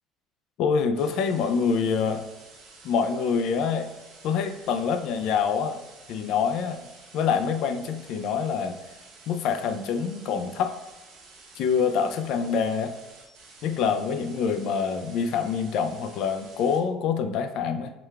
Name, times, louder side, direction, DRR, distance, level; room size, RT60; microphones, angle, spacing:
voice 1, 0.6-2.2 2.8-3.9 4.2-5.8 6.1-6.9 7.1-8.8 9.3-10.7 11.6-12.9 13.6-17.9, left 6 dB, 55° left, 8 dB, 0.3 m, -26 dB
sound 1, 0.9-16.8, right 3 dB, 85° right, 1.3 m, -51 dB
4.8 x 2.3 x 3.2 m, 1.1 s
cardioid pair, 170°, 0 cm